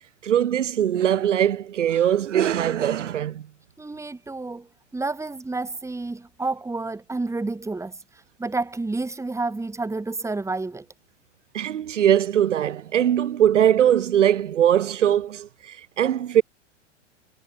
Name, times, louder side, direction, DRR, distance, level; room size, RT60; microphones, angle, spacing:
voice 1, 0.2-3.5 11.5-16.4, right 10 dB, 75° right, 1.4 m, -21 dB
voice 2, 3.8-4.7 4.9-8.0 8.4-10.9, right 3 dB, 10° right, 3.1 m, -29 dB
figure-of-eight pair, 95°, 37 cm